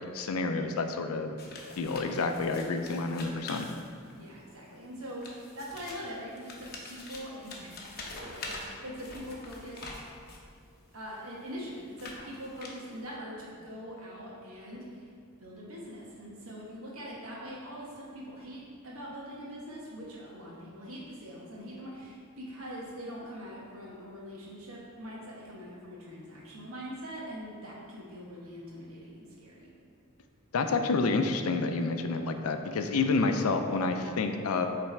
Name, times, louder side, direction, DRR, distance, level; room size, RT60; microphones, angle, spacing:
voice 1, 0.0-1.4 1.8-3.7 30.5-34.7, left 3 dB, 90° left, 6 dB, 0.5 m, -29 dB
sound 1, 1.4-4.3 5.0-10.5 11.2-13.1, left 3 dB, 45° left, 0.8 m, -45 dB
voice 2, 4.1-9.9 10.9-15.1 15.4-29.7, equal, 75° right, -4 dB, 1.2 m, -43 dB
7.2 x 3.3 x 4.4 m, 2.2 s
head